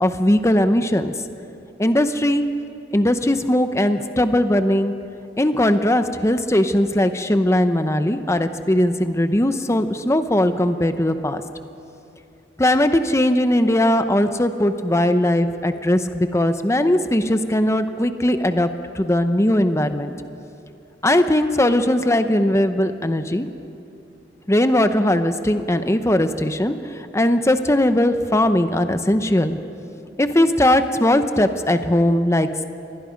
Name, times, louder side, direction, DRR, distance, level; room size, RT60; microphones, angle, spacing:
voice 1, 0.0-1.1 1.8-2.4 2.9-4.9 5.4-11.4 12.6-18.7 18.9-20.1 21.0-23.5 24.5-26.7 27.1-29.6 30.2-32.6, left 1 dB, 15° left, 9 dB, 0.8 m, -19 dB
27.0 x 21.0 x 5.2 m, 2.7 s
head